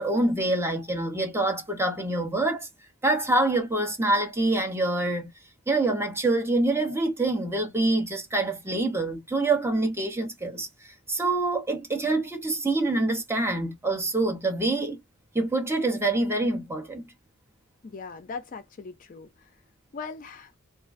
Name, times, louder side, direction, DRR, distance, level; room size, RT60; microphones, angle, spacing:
voice 1, 0.0-2.7 3.0-5.3 5.7-15.0 15.3-17.0, right 2 dB, 10° right, 0.6 m, -26 dB
voice 2, 17.8-19.5 19.9-20.5, left 5 dB, 40° left, 0.4 m, -39 dB
2.3 x 2.1 x 2.4 m
head